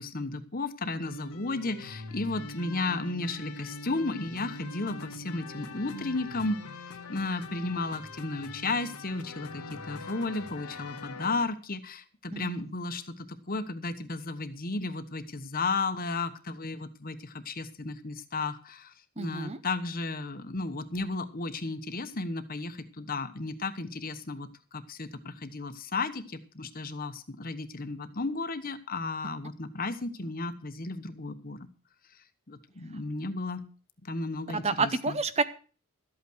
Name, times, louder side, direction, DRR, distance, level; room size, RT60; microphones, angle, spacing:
voice 1, 0.0-31.6 32.5-33.6 34.0-35.2, left 3 dB, 40° left, 10 dB, 1.1 m, -34 dB
sound 1, 1.0-11.5, left 3 dB, 85° left, 1.5 m, -43 dB
voice 2, 19.2-19.6 34.5-35.4, right 4 dB, 30° right, 12 dB, 0.7 m, -29 dB
13.0 x 8.6 x 6.3 m, 0.39 s
head